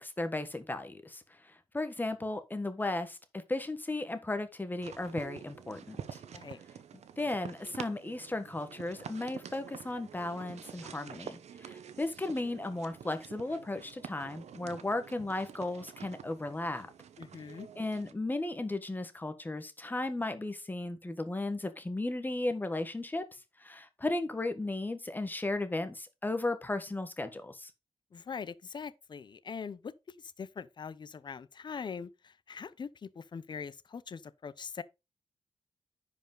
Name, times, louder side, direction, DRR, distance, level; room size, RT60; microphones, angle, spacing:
voice 1, 0.0-6.2 7.2-16.9 17.7-23.2 23.6-27.7, left 2 dB, 15° left, 1.3 m, -35 dB
sound 1, 4.8-18.1, right 8 dB, 85° right, 1.0 m, -48 dB
voice 2, 17.2-17.7 28.1-34.8, left 6 dB, 45° left, 0.7 m, -42 dB
10.5 x 5.1 x 3.8 m
wide cardioid pair, 130°, 11 cm